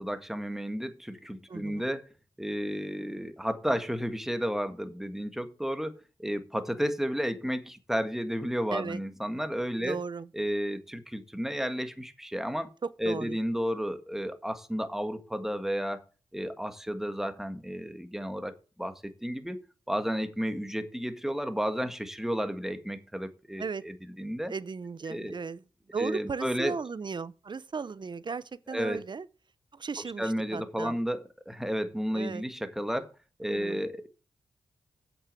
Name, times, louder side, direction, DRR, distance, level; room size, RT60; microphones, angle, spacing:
voice 1, 0.0-2.1 2.4-10.0 10.3-12.7 13.0-16.0 16.3-19.6 19.9-24.5 25.1-25.4 26.0-26.7 28.7-29.0 30.2-33.1 33.4-34.1, equal, 5° right, 1.7 m, -32 dB
voice 2, 1.5-1.9 8.7-9.0 9.8-10.3 12.8-13.4 23.6-23.8 24.5-25.6 25.9-29.3 29.7-31.0 32.1-32.4 33.5-33.9, right 5 dB, 50° right, 0.7 m, -36 dB
8.3 x 6.9 x 7.6 m
cardioid pair, 55°, 10 cm